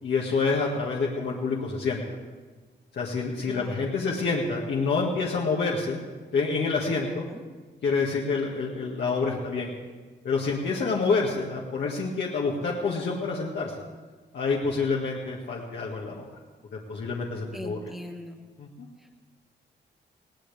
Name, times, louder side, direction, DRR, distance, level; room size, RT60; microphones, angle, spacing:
voice 1, 0.0-2.2 2.9-6.0 6.3-7.3 7.8-9.7 10.2-13.7 14.3-16.3 16.9-17.8 18.6-18.7, left 4 dB, 75° left, -4 dB, 2.0 m, -27 dB
voice 2, 3.5-3.9 7.0-7.4 17.5-18.4 19.0-19.1, equal, ahead, 2 dB, 1.5 m, -41 dB
20.5 x 17.5 x 3.5 m, 1.4 s
wide cardioid pair, 130°, 18 cm